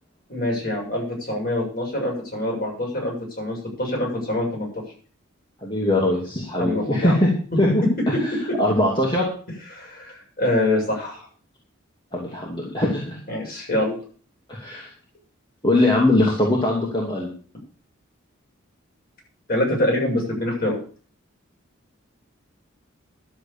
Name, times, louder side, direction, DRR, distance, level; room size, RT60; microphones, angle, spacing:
voice 1, 0.3-4.8 6.6-7.2 9.7-11.3 13.3-14.0 19.5-20.8, left 1 dB, 45° left, -2 dB, 7.3 m, -25 dB
voice 2, 5.6-7.3 7.6-7.8 8.2-8.3 8.6-9.3 12.1-13.2 14.5-14.9 15.6-17.3, left 1 dB, 25° left, -3 dB, 2.6 m, -21 dB
12.0 x 7.8 x 7.0 m, 0.43 s
head